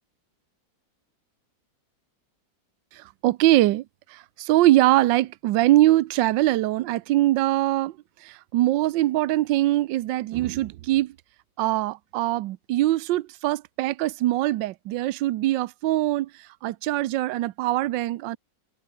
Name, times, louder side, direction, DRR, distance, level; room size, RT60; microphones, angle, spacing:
voice 1, 2.9-8.0 8.2-11.1 11.6-18.4, right 16 dB, 75° right, 1.3 m, -22 dB
omnidirectional pair, 2.0 m